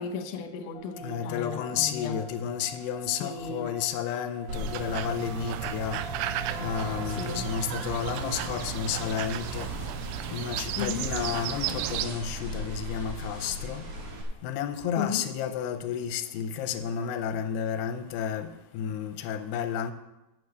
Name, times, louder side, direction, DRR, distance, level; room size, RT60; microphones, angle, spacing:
voice 1, 0.0-2.2 3.2-3.7 7.1-7.4 10.8-11.1 15.0-15.2, left 6 dB, 70° left, 6 dB, 2.0 m, -35 dB
sound 1, 0.7-12.1, left 1 dB, 20° left, 1.5 m, -47 dB
voice 2, 1.0-6.0 6.6-9.7 10.3-13.8 14.4-18.5 18.7-19.9, left 8 dB, 90° left, 9 dB, 2.8 m, -31 dB
sound 2, 4.5-14.2, right 1 dB, 55° right, 2.1 m, -38 dB
sound 3, 4.5-12.1, right 12 dB, 85° right, 2.7 m, -34 dB
8.6 x 6.5 x 8.0 m, 0.97 s
omnidirectional pair, 4.8 m